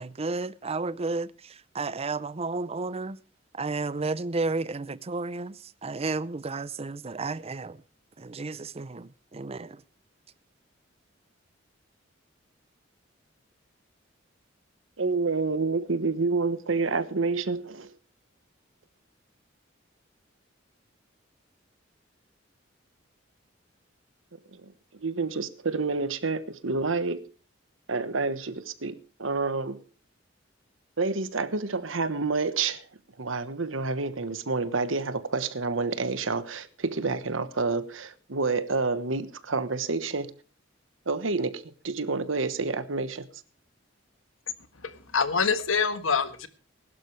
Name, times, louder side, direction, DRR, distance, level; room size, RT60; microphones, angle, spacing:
voice 1, 0.0-3.2 3.5-7.8 8.2-9.8, right 3 dB, 30° right, 0.6 m, -32 dB
voice 2, 15.0-17.9 24.5-24.7 25.0-27.2 27.9-29.8 31.0-32.9 33.2-40.3 41.1-43.3, right 3 dB, 80° right, 1.2 m, -28 dB
voice 3, 44.7-46.5, left 5 dB, 85° left, 1.6 m, -26 dB
21.0 x 12.0 x 3.3 m
head